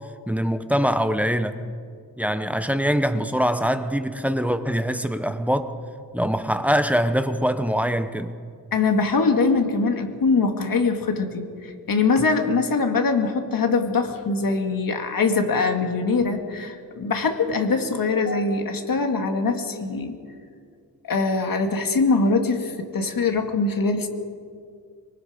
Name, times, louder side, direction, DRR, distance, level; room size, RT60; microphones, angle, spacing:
voice 1, 0.3-1.6 2.2-5.7 6.1-8.3, equal, 5° right, 9 dB, 0.9 m, -23 dB
voice 2, 8.7-20.2 21.1-24.1, left 4 dB, 70° left, 4 dB, 2.3 m, -22 dB
24.5 x 23.5 x 5.2 m, 2.2 s
wide cardioid pair, 135°, 35 cm